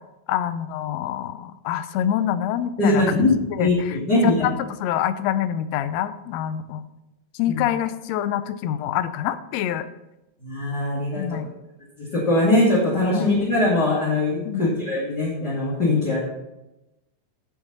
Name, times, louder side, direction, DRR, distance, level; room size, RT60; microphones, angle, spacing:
voice 1, 0.3-4.0 4.2-6.8 7.4-9.9 11.2-11.5 13.1-13.3 14.5-14.7, left 10 dB, 75° left, 12 dB, 1.8 m, -26 dB
voice 2, 2.8-4.5 7.5-7.6 10.4-11.4 12.0-16.2, left 2 dB, 35° left, -7 dB, 3.0 m, -21 dB
16.0 x 5.9 x 4.1 m, 0.96 s
omnidirectional pair, 3.3 m